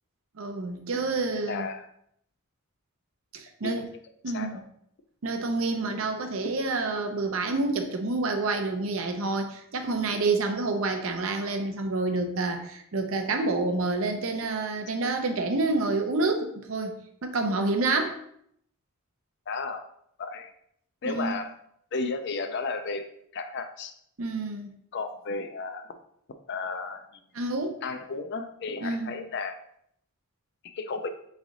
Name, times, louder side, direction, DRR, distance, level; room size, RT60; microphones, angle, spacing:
voice 1, 0.4-1.7 3.3-3.8 4.2-4.6 5.2-17.0 17.2-18.2 21.0-21.4 24.2-24.7 27.3-27.8 28.8-29.2, right 3 dB, 70° right, 5 dB, 0.6 m, -28 dB
voice 2, 1.3-1.9 3.6-3.8 4.3-4.6 19.5-19.8 20.2-20.5 21.0-21.5 21.9-23.1 23.3-23.9 24.9-25.8 26.5-27.0 27.8-29.6 30.7-31.1, left 4 dB, 50° left, 7 dB, 0.4 m, -33 dB
3.7 x 3.2 x 3.8 m, 0.70 s
head